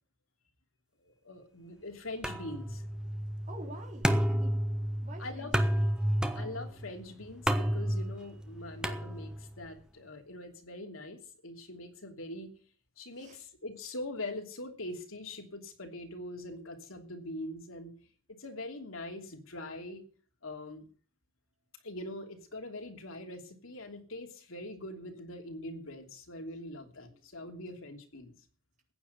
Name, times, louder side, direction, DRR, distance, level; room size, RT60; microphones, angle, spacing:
voice 1, 1.0-2.8 5.2-5.5 6.3-12.5 13.0-17.9 18.3-20.0 20.4-20.9 21.8-28.3, left 1 dB, 85° left, 4 dB, 3.0 m, -43 dB
sound 1, 2.2-9.6, equal, 5° right, 1.2 m, -31 dB
voice 2, 3.4-4.6 5.0-5.8 13.1-13.4 27.1-27.2, right 1 dB, 35° right, 0 dB, 4.0 m, -48 dB
15.5 x 9.7 x 6.8 m, 0.43 s
head